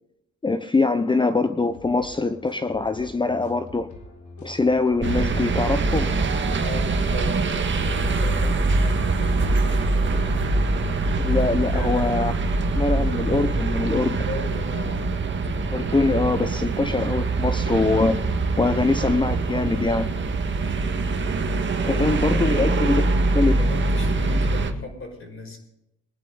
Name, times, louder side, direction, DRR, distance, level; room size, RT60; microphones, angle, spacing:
voice 1, 0.4-3.9 4.4-6.1 11.2-12.3 12.8-14.2 15.7-18.2 18.6-20.1 21.9-23.0 23.3-23.6, left 3 dB, 15° left, 0.7 m, -23 dB
sound 1, 1.7-20.6, left 4 dB, 75° left, 3.7 m, -44 dB
sound 2, 5.0-24.7, right 3 dB, 40° right, 1.8 m, -23 dB
voice 2, 6.6-10.4 11.7-12.1 14.2-15.0 20.6-21.0 21.9-22.7 23.2-25.6, left 2 dB, 45° left, 5.3 m, -37 dB
21.0 x 11.0 x 3.9 m
cardioid pair, 90°, 30 cm